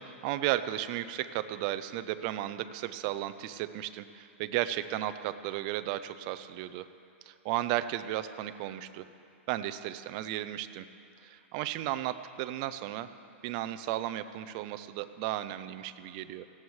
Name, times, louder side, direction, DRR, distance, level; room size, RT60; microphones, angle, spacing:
voice 1, 0.0-6.9 7.3-9.1 9.5-10.8 11.2-13.1 13.4-16.4, right 14 dB, 35° right, 12 dB, 0.5 m, -34 dB
18.5 x 15.5 x 3.2 m, 2.6 s
hypercardioid pair, 160°, 7 cm